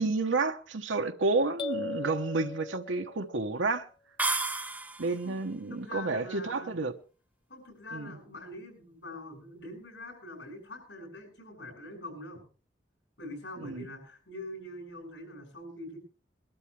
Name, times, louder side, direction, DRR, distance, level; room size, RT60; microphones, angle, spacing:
voice 1, 0.0-3.9 5.0-6.9 7.9-8.2 13.6-13.9, right 3 dB, 90° right, 1.1 m, -30 dB
sound 1, 1.6-3.5, left 3 dB, 25° left, 0.7 m, -38 dB
sound 2, 4.2-5.3, right 3 dB, 10° right, 0.8 m, -31 dB
voice 2, 5.7-6.7 7.5-12.4 13.2-16.0, left 1 dB, 75° left, 7.5 m, -44 dB
22.0 x 12.0 x 3.3 m
head